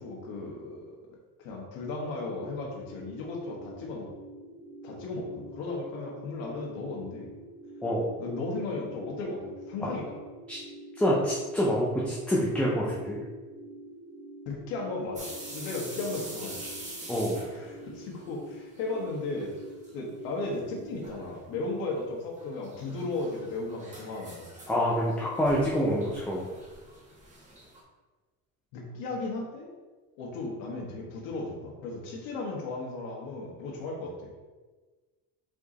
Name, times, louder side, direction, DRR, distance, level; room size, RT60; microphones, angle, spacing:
voice 1, 0.0-4.1 4.8-7.3 8.2-10.1 14.4-16.6 17.5-19.5 19.9-24.5 28.7-29.7 30.2-34.3, left 3 dB, 65° left, -1 dB, 1.7 m, -35 dB
sound 1, 2.4-21.2, right 2 dB, 90° right, 1.9 m, -47 dB
voice 2, 10.9-13.2 17.1-17.4 24.7-26.5, equal, 5° left, -5 dB, 0.4 m, -26 dB
sound 2, 15.2-19.0 19.2-19.9 20.2-20.3 21.0-21.4 22.4-27.8, right 1 dB, 20° right, 1.3 m, -45 dB
5.2 x 4.6 x 3.9 m, 1.3 s
cardioid pair, 175°, 36 cm